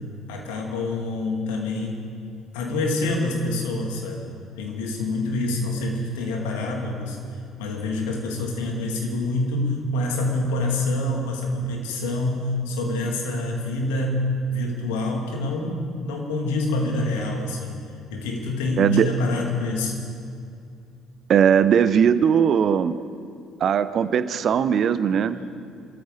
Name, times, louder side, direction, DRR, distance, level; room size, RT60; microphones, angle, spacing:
voice 1, 0.3-2.1 2.5-4.2 4.6-7.2 7.6-17.8 18.1-20.0 25.2-25.3, left 2 dB, 70° left, 1 dB, 2.4 m, -26 dB
voice 2, 18.8-19.1 21.3-23.0 23.6-25.4, right 8 dB, 50° right, 14 dB, 0.7 m, -19 dB
26.5 x 13.5 x 3.9 m, 2.4 s
figure-of-eight pair, 50°, 0 cm